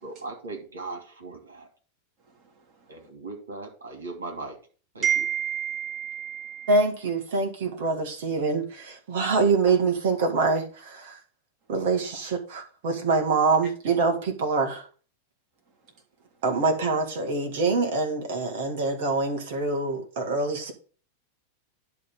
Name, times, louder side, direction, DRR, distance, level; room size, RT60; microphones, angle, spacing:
voice 1, 0.0-1.7 2.9-4.6 4.9-5.3, right 3 dB, 70° right, 3.0 m, -38 dB
voice 2, 5.0-6.7, right 9 dB, 35° right, 3.3 m, -28 dB
voice 3, 6.7-11.2 11.7-14.9 16.4-20.7, right 3 dB, 50° right, 2.0 m, -25 dB
10.5 x 3.7 x 7.2 m
figure-of-eight pair, 90°, 0 cm